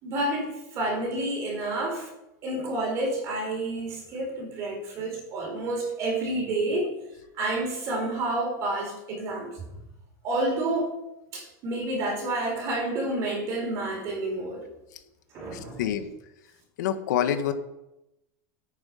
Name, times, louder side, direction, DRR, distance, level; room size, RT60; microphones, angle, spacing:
voice 1, 0.0-2.1 2.4-6.9 7.3-9.5 10.2-10.9 11.3-14.6 15.3-15.8, right 2 dB, 30° right, 2 dB, 4.2 m, -29 dB
voice 2, 15.5-16.1 16.8-17.5, left 10 dB, 80° left, 8 dB, 1.4 m, -27 dB
14.5 x 9.0 x 5.8 m, 0.92 s
supercardioid pair, 175°, 10 cm